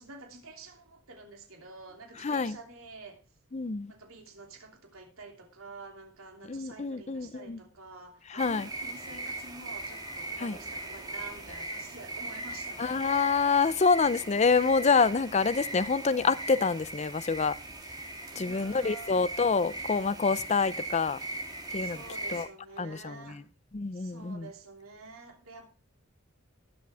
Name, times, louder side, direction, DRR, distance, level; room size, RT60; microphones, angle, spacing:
voice 1, 0.0-3.2 3.9-13.0 18.3-19.2 21.8-23.4 23.9-25.7, right 3 dB, 85° right, 3.0 m, -48 dB
voice 2, 2.2-2.6 3.5-3.9 6.5-7.6 8.3-8.7 10.4-10.6 12.8-17.6 18.4-21.2 21.7-22.0 22.3-22.5 22.8-23.4 23.7-24.5, left 4 dB, 35° left, 0.5 m, -27 dB
sound 1, 8.4-22.4, right 2 dB, 20° right, 3.1 m, -39 dB
19.5 x 7.6 x 3.5 m
head